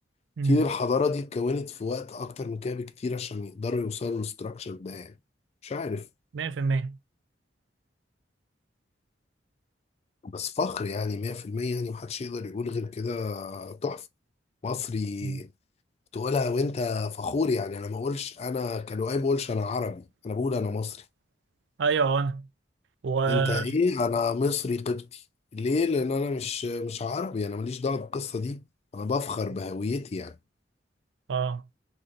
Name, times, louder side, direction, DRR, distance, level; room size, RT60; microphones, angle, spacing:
voice 1, 0.4-5.1 5.6-6.1 10.2-14.0 14.6-15.5 16.1-21.0 23.3-25.2 25.5-28.6 28.9-30.4, left 4 dB, 35° left, 0.3 m, -29 dB
voice 2, 6.3-7.0 15.2-15.4 21.8-22.4 23.0-23.7 31.3-31.6, right 5 dB, 80° right, 0.4 m, -26 dB
3.2 x 2.6 x 3.8 m
head